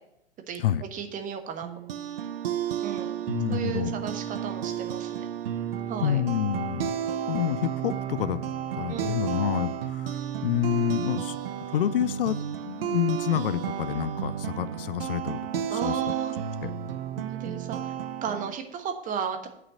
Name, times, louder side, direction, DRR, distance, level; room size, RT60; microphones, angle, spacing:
voice 1, 0.9-1.7 2.8-3.1 3.5-5.3 5.9-6.2 8.9-9.2 15.7-16.3 17.1-17.9 18.2-19.5, right 7 dB, 25° right, 7 dB, 1.2 m, -34 dB
sound 1, 1.6-18.5, right 9 dB, 65° right, 0.7 m, -32 dB
voice 2, 3.3-3.9 6.0-7.0 7.3-8.4 8.7-11.4 11.7-16.0 16.6-16.7, left 11 dB, 60° left, 16 dB, 0.6 m, -28 dB
9.3 x 5.8 x 6.1 m, 0.77 s
figure-of-eight pair, 95°, 32 cm